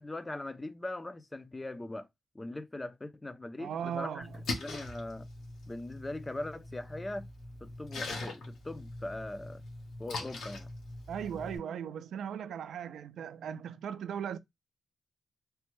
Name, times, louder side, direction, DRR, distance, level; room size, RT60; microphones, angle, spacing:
voice 1, 0.0-2.1 2.3-5.3 5.7-7.3 7.6-9.6 10.0-10.7, left 2 dB, 15° left, 0.4 m, -41 dB
voice 2, 3.6-4.4 11.1-14.4, right 8 dB, 90° right, 0.3 m, -38 dB
Splash splatter, 4.2-11.6, left 2 dB, 85° left, 1.0 m, -42 dB
3.2 x 2.1 x 2.9 m
wide cardioid pair, 125°, 0 cm